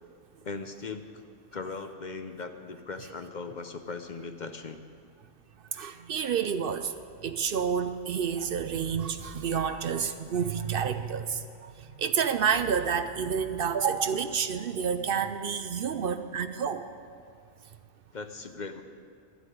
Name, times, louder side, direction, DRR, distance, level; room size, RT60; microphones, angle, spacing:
voice 1, 0.4-1.0 1.5-4.8 18.1-18.8, left 4 dB, 50° left, 7 dB, 0.7 m, -38 dB
voice 2, 5.7-6.9 7.2-16.9, right 7 dB, 60° right, 10 dB, 0.7 m, -29 dB
12.0 x 8.1 x 9.8 m, 2.4 s
omnidirectional pair, 1.1 m